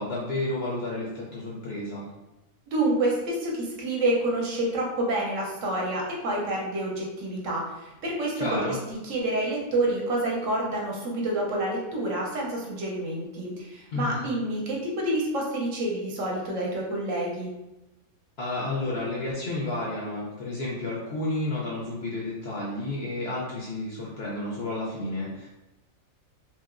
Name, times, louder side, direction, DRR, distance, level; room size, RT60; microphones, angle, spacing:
voice 1, 0.0-2.1 8.4-8.8 13.9-14.3 18.4-25.5, left 2 dB, 60° left, -5 dB, 0.7 m, -31 dB
voice 2, 2.7-17.5, right 1 dB, 65° right, -2 dB, 1.0 m, -28 dB
2.9 x 2.8 x 2.4 m, 0.97 s
omnidirectional pair, 1.5 m